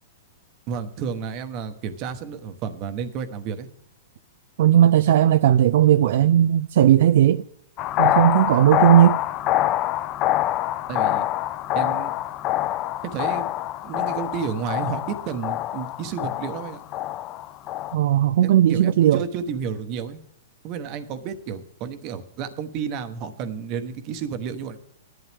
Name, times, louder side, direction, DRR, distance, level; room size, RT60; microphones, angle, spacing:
voice 1, 0.7-3.7 10.9-11.3 11.7-12.1 13.1-13.5 13.8-16.8 18.4-20.2 20.6-24.8, right 6 dB, 35° right, 1.1 m, -31 dB
voice 2, 4.6-7.4 8.0-9.2 17.9-19.2, right 11 dB, 60° right, 0.3 m, -16 dB
sound 1, 7.8-18.0, left 14 dB, 30° left, 0.4 m, -25 dB
16.0 x 11.0 x 3.6 m
hypercardioid pair, 155°, 0 cm